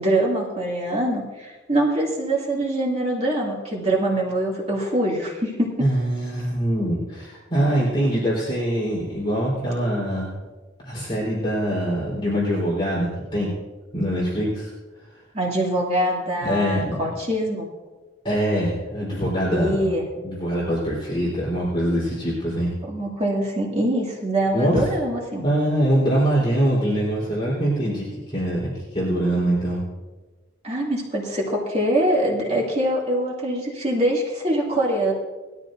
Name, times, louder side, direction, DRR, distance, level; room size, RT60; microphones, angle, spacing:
voice 1, 0.0-5.9 15.3-17.7 19.5-20.1 22.9-25.5 30.6-35.1, right 1 dB, 35° right, -3 dB, 2.4 m, -24 dB
voice 2, 5.8-10.3 10.8-13.5 13.9-14.7 16.4-17.1 18.2-19.9 20.2-22.7 24.5-24.9 25.4-29.8, right 1 dB, 25° left, -7 dB, 3.8 m, -23 dB
20.0 x 13.5 x 2.6 m, 1.2 s
head